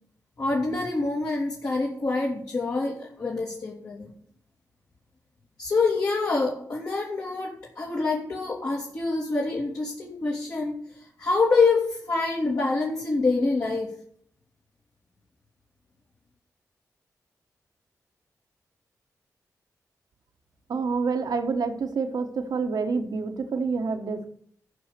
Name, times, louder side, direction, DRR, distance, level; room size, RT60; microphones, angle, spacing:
voice 1, 0.4-4.1 5.6-10.8 11.2-13.9, left 3 dB, 60° left, -5 dB, 2.7 m, -26 dB
voice 2, 20.7-24.3, right 4 dB, 80° right, 6 dB, 1.2 m, -27 dB
12.5 x 5.6 x 6.8 m, 0.63 s
cardioid pair, 60°, 7 cm